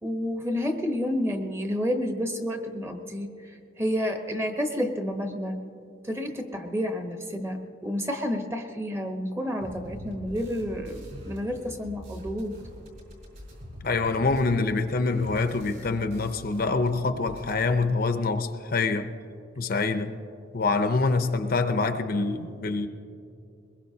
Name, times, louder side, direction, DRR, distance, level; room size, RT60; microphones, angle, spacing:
voice 1, 0.0-3.3 3.8-5.6 6.0-12.6, equal, 15° right, 5 dB, 0.9 m, -30 dB
sound 1, 9.6-16.9 17.1-17.6, equal, 50° right, 4.9 m, -43 dB
voice 2, 13.8-19.1 19.6-20.2 20.5-22.9, left 3 dB, 45° left, 8 dB, 0.6 m, -25 dB
22.0 x 21.0 x 2.8 m, 2.6 s
head